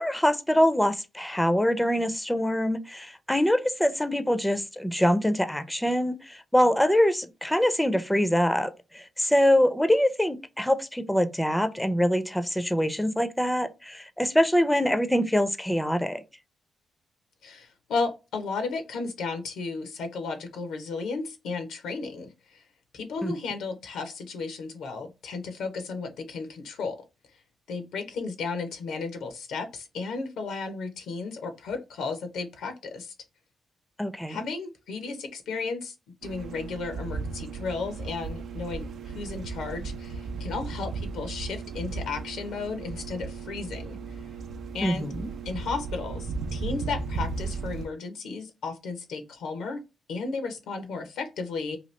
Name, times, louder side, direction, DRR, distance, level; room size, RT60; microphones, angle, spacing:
voice 1, 0.0-16.2 23.2-23.3 34.0-34.4 44.8-45.2, equal, 5° left, 0.5 m, -24 dB
voice 2, 17.4-22.6 22.9-27.0 27.7-33.1 34.3-35.9 36.2-44.0 44.7-45.1 45.4-49.8 50.1-51.8, left 4 dB, 85° left, 0.7 m, -34 dB
sound 1, 36.2-47.9, right 4 dB, 70° right, 0.4 m, -35 dB
2.9 x 2.4 x 3.1 m
supercardioid pair, 60°, 0 cm